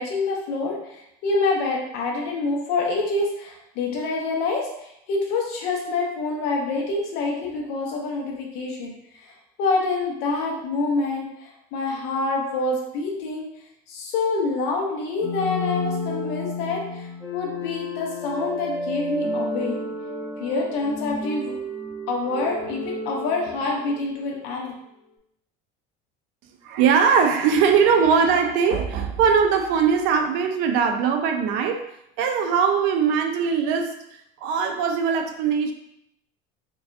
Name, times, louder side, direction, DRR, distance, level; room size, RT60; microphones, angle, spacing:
voice 1, 0.0-8.9 9.2-9.3 9.6-13.4 13.9-19.8 20.4-21.5 22.1-24.7, left 3 dB, 65° left, -1 dB, 0.8 m, -26 dB
sound 1, 15.2-24.2, left 1 dB, 5° left, 1.1 m, -31 dB
voice 2, 26.6-31.8 32.2-34.0 34.4-35.7, right 6 dB, 70° right, 6 dB, 0.5 m, -20 dB
4.7 x 2.3 x 2.6 m, 0.78 s
cardioid pair, 160°, 19 cm